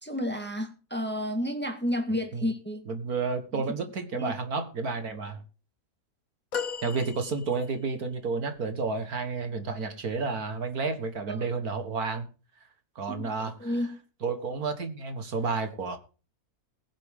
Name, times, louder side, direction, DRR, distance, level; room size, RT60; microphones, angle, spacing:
voice 1, 0.0-2.9 3.5-3.6 4.2-4.3 11.3-11.5 13.1-13.3 13.6-14.0, equal, 5° left, 1.9 m, -31 dB
voice 2, 2.9-5.4 6.8-12.3 13.0-13.7 14.2-16.0, right 4 dB, 65° right, 2.1 m, -31 dB
sound 1, 6.5-7.9 8.7-8.8, left 6 dB, 60° left, 1.8 m, -36 dB
21.5 x 7.7 x 3.7 m
omnidirectional pair, 1.7 m